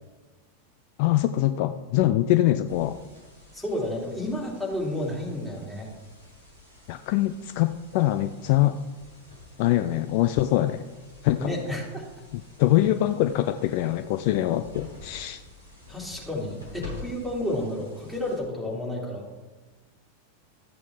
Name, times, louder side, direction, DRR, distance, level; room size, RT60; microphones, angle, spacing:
voice 1, 1.0-3.0 6.9-8.8 9.6-10.8 11.2-11.5 12.3-15.4, left 14 dB, 45° left, 10 dB, 0.4 m, -23 dB
sound 1, 2.7-18.7, left 2 dB, 80° left, 4.0 m, -48 dB
voice 2, 3.5-5.9 11.4-12.0 15.9-19.3, left 1 dB, 5° left, -4 dB, 3.1 m, -31 dB
13.5 x 8.4 x 3.6 m, 1.2 s
figure-of-eight pair, 90°, 0 cm